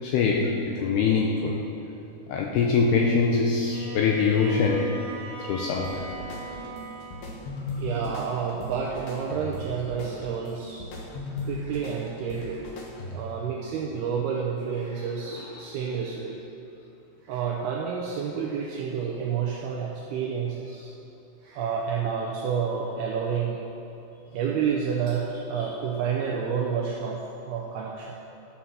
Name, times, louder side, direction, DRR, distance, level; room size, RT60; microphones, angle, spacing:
voice 1, 0.0-1.6 2.3-4.9 5.4-6.0 15.3-15.4, left 5 dB, 85° left, -1 dB, 2.4 m, -23 dB
Bowed string instrument, 3.6-7.4, right 2 dB, 60° right, 1.9 m, -38 dB
sound 1, 5.8-13.5, left 1 dB, 70° left, 3.0 m, -38 dB
voice 2, 7.8-10.9 11.4-12.7 13.1-16.4 17.2-20.9 21.4-23.6 24.3-28.2, right 6 dB, 85° right, -2 dB, 2.2 m, -29 dB
12.5 x 7.2 x 5.7 m, 2.8 s
omnidirectional pair, 5.5 m